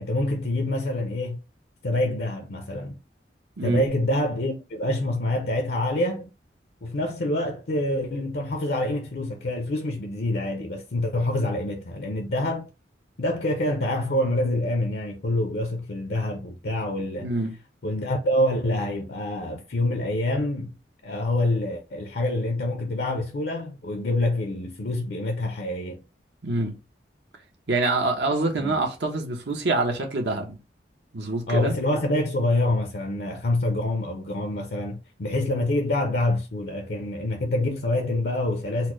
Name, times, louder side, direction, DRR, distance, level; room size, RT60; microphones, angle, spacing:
voice 1, 0.0-1.4 1.8-3.0 3.6-6.3 6.8-12.7 13.2-17.3 17.8-20.8 21.0-26.0 28.6-28.8 31.5-38.9, left 1 dB, 60° left, 0.6 m, -26 dB
voice 2, 17.2-17.5 26.4-26.8 27.7-30.6 31.1-31.7, right 2 dB, 75° right, 1.0 m, -25 dB
4.1 x 2.1 x 3.0 m
head